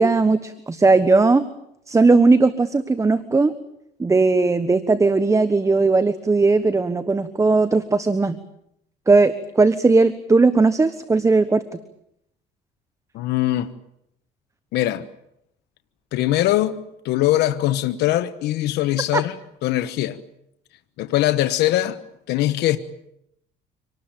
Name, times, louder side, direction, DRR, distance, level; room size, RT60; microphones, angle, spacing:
voice 1, 0.0-1.4 1.9-3.5 4.0-8.4 9.1-11.6 19.1-19.2, right 3 dB, 20° right, 1.2 m, -17 dB
voice 2, 13.1-13.7 14.7-15.0 16.1-19.3 19.6-20.2 21.0-22.0 22.3-22.8, left 14 dB, 85° left, 1.2 m, -21 dB
26.0 x 19.0 x 8.9 m
cardioid pair, 110°, 17 cm